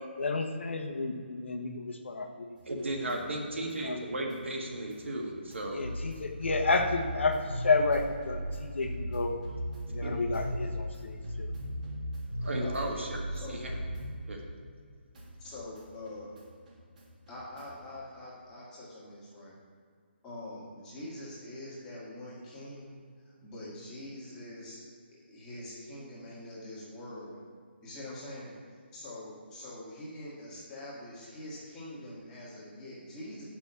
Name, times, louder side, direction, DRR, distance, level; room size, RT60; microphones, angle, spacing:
voice 1, 0.2-2.6 3.8-4.0 5.7-9.3 9.9-11.5, left 3 dB, 75° left, 5 dB, 1.1 m, -31 dB
sound 1, 2.6-14.9 15.1-17.9, equal, 45° right, 1.7 m, -39 dB
voice 2, 2.6-5.8 10.0-10.1 12.4-13.2 13.5-13.8 14.3-14.4, right 1 dB, 85° right, 0 dB, 1.8 m, -35 dB
voice 3, 12.6-13.0 13.3-13.6 15.4-16.4 17.3-19.5 20.2-22.9 23.2-24.9 25.3-27.4 27.8-33.4, left 1 dB, 10° left, -7 dB, 1.7 m, -44 dB
6.6 x 5.9 x 6.9 m, 2.1 s
hypercardioid pair, 170°, 6 cm